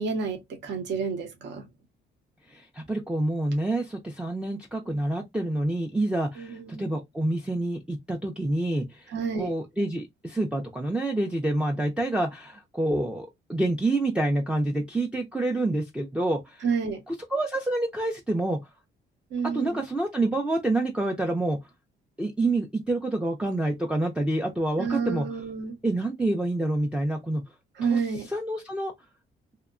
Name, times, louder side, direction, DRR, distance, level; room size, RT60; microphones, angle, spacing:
voice 1, 0.0-1.6 6.4-7.0 9.1-9.5 16.6-17.0 19.3-19.8 24.8-25.8 27.7-28.3, right 5 dB, 65° right, 0.8 m, -30 dB
voice 2, 2.5-9.1 9.3-16.7 17.1-18.6 19.5-21.6 22.2-25.3 25.8-27.4 27.9-28.0 28.3-28.9, right 2 dB, 5° right, 0.4 m, -27 dB
2.8 x 2.1 x 2.4 m
cardioid pair, 90°, 20 cm